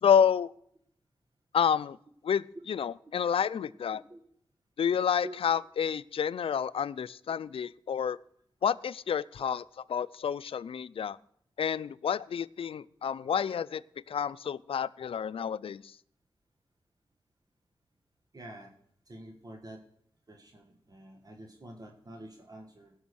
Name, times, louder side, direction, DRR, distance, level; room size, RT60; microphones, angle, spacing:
voice 1, 0.0-0.5 1.5-2.0 2.2-4.0 4.8-8.2 8.6-11.2 11.6-13.8 14.1-15.8, left 8 dB, 85° left, 18 dB, 0.4 m, -29 dB
voice 2, 18.3-18.7 19.1-19.8 20.3-22.9, right 1 dB, 40° right, 2 dB, 1.6 m, -46 dB
16.5 x 6.2 x 6.3 m, 0.68 s
wide cardioid pair, 75°, 9 cm